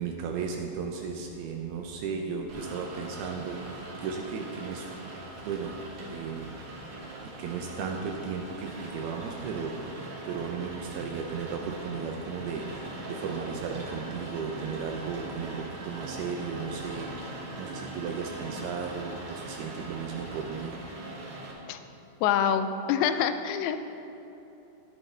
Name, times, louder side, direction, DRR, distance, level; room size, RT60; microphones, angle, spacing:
voice 1, 0.0-4.9 5.5-5.8 6.1-6.5 7.4-20.8, right 5 dB, 80° right, 2 dB, 2.4 m, -35 dB
Rain, 2.5-21.5, right 2 dB, 50° right, 2.2 m, -41 dB
voice 2, 22.2-23.8, left 8 dB, 85° left, 9 dB, 2.8 m, -26 dB
13.5 x 11.0 x 3.3 m, 3.0 s
omnidirectional pair, 5.1 m